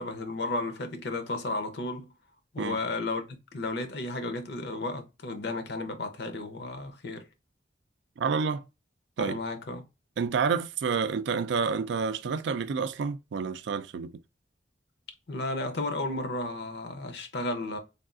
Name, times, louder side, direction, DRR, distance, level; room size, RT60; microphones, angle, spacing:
voice 1, 0.0-2.1 2.5-7.3 9.2-9.8 15.3-17.8, left 2 dB, 60° left, 0.6 m, -33 dB
voice 2, 8.2-8.7 9.2-9.4 10.2-14.2, right 5 dB, 65° right, 0.3 m, -29 dB
3.5 x 2.3 x 2.4 m
head